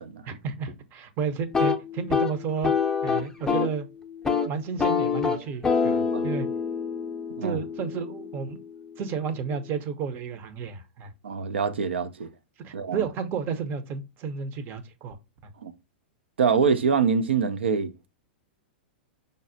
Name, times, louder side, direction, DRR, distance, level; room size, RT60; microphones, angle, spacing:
voice 1, 0.3-2.7 3.0-3.9 4.4-6.5 7.4-8.6 9.0-11.1 12.6-15.2, right 6 dB, 35° right, 0.7 m, -32 dB
sound 1, 1.4-3.8 4.1-4.5 4.8-8.6, left 6 dB, 10° left, 0.5 m, -26 dB
voice 2, 11.2-12.3 12.7-13.1 15.6-15.7 16.4-18.1, right 6 dB, 85° right, 0.5 m, -25 dB
5.1 x 2.0 x 2.6 m
hypercardioid pair, 115°, 6 cm